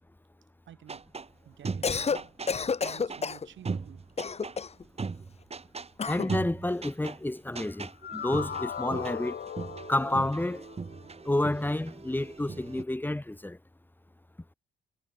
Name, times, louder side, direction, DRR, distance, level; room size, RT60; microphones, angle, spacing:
voice 1, 0.6-1.0 1.4-2.3 2.6-4.0, right 11 dB, 70° right, 6.8 m, -50 dB
sound 1, 0.9-1.3 1.6-3.2 3.6-4.6 4.8-5.9 6.3-7.2 7.5-12.8, right 4 dB, 30° right, 4.1 m, -38 dB
Cough, 1.7-2.2 2.5-3.5 4.2-4.8 6.0-6.3, left 5 dB, 30° left, 1.6 m, -30 dB
voice 2, 6.1-9.4 9.9-10.7 11.3-13.6, left 1 dB, 10° left, 3.7 m, -30 dB
sound 2, 7.7-11.2, left 8 dB, 55° left, 5.3 m, -38 dB
cardioid pair, 90°, 20 cm